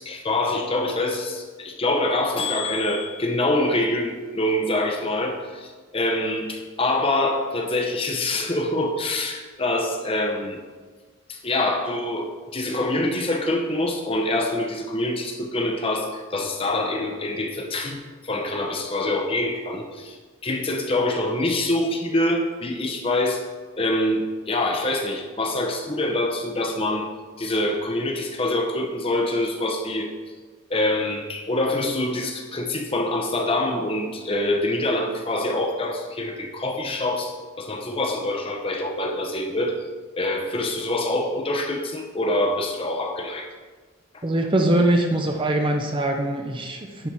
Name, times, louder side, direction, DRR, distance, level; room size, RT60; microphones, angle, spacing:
voice 1, 0.0-10.6 11.3-18.0 18.2-20.2 20.4-23.4 23.8-27.1 27.4-30.1 30.7-39.8 40.2-43.5 44.1-44.2, left 1 dB, 25° left, 2 dB, 0.8 m, -25 dB
voice 2, 44.2-47.1, right 1 dB, 25° right, 3 dB, 0.6 m, -22 dB
10.0 x 4.3 x 4.8 m, 1.4 s
head